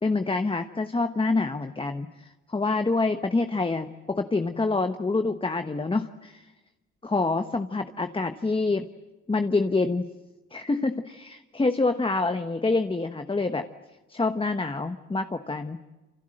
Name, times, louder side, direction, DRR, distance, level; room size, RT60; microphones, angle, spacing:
voice 1, 0.0-6.5 7.0-8.9 9.3-10.1 10.5-13.7 14.1-15.8, left 3 dB, 15° left, 8 dB, 1.2 m, -26 dB
28.0 x 26.5 x 7.8 m, 1.1 s
cardioid pair, 90°, 30 cm